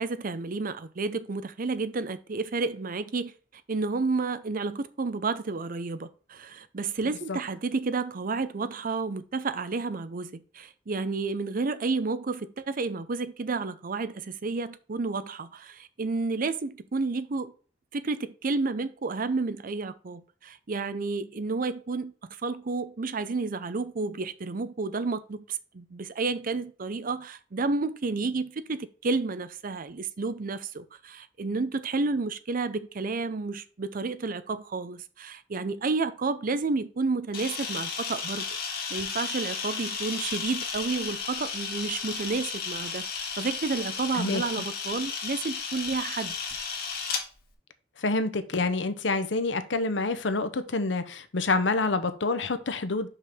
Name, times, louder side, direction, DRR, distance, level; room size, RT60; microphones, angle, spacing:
voice 1, 0.0-3.3 3.7-17.5 17.9-38.4 38.9-46.4, right 3 dB, 50° right, 0.6 m, -31 dB
Camera, 37.3-47.2, left 5 dB, 55° left, 1.9 m, -34 dB
voice 2, 48.0-53.1, left 3 dB, 85° left, 0.8 m, -27 dB
5.9 x 5.5 x 3.6 m
head